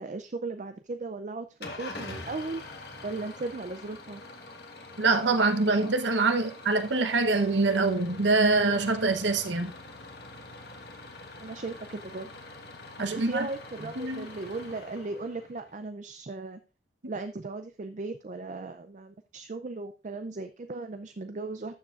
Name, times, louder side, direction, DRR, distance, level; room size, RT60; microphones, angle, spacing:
voice 1, 0.0-2.6 3.0-4.2 11.4-12.3 13.0-16.6 17.1-21.8, right 3 dB, 40° right, 0.5 m, -37 dB
Engine starting / Idling, 1.6-15.8, left 2 dB, 55° left, 1.6 m, -45 dB
voice 2, 5.0-9.7 13.0-13.5 14.0-14.3, right 3 dB, 75° right, 1.0 m, -25 dB
13.0 x 7.2 x 2.5 m
head